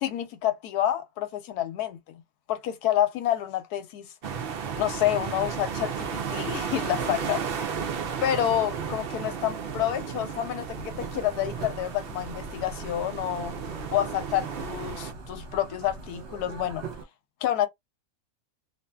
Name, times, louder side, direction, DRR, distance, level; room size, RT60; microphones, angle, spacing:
voice 1, 0.0-2.0 2.5-4.1 4.8-7.4 8.2-13.5 13.9-16.8 17.4-17.7, left 12 dB, 85° left, 1.2 m, -28 dB
sound 1, 4.2-15.1, right 6 dB, 80° right, 0.5 m, -34 dB
sound 2, 10.7-17.0, right 4 dB, 55° right, 1.0 m, -41 dB
2.6 x 2.6 x 2.2 m
omnidirectional pair, 1.6 m